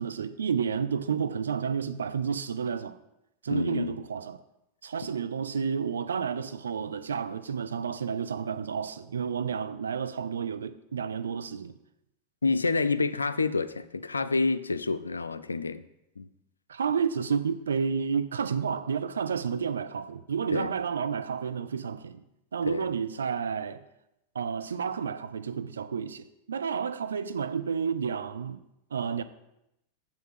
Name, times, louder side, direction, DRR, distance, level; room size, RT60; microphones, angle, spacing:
voice 1, 0.0-3.0 3.4-4.4 4.8-11.8 16.7-22.2 22.5-23.8 24.3-28.6 28.9-29.2, right 6 dB, 70° right, 0.5 m, -31 dB
voice 2, 3.5-4.0 12.4-15.8 16.2-16.3 20.5-20.7 22.7-22.9, left 3 dB, 75° left, 0.4 m, -28 dB
7.1 x 5.7 x 7.6 m
figure-of-eight pair, 90°, 0 cm